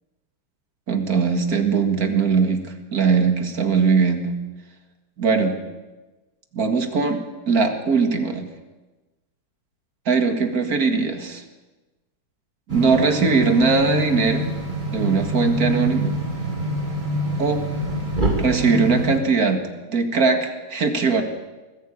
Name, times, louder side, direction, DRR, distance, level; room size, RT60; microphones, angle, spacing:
voice 1, 0.9-4.3 5.2-5.6 6.5-8.5 10.1-11.4 12.7-14.5 14.9-16.1 17.4-17.6 18.4-21.2, right 4 dB, 45° right, 6 dB, 2.2 m, -20 dB
sound 1, 12.7-19.2, equal, 20° right, 3.1 m, -25 dB
20.5 x 15.0 x 8.6 m, 1.2 s
omnidirectional pair, 2.3 m